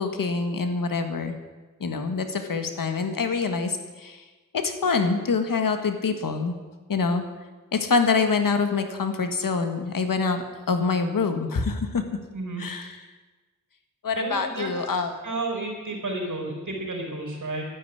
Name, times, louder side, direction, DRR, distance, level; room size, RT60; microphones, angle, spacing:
voice 1, 0.0-1.3 1.8-4.2 4.5-6.5 6.9-7.2 7.7-12.0 12.6-13.0 14.0-15.1, left 4 dB, 85° left, 7 dB, 1.7 m, -25 dB
voice 2, 14.1-14.7 15.2-17.7, right 2 dB, 65° right, 1 dB, 4.9 m, -31 dB
12.0 x 10.0 x 9.4 m, 1.3 s
wide cardioid pair, 85°, 33 cm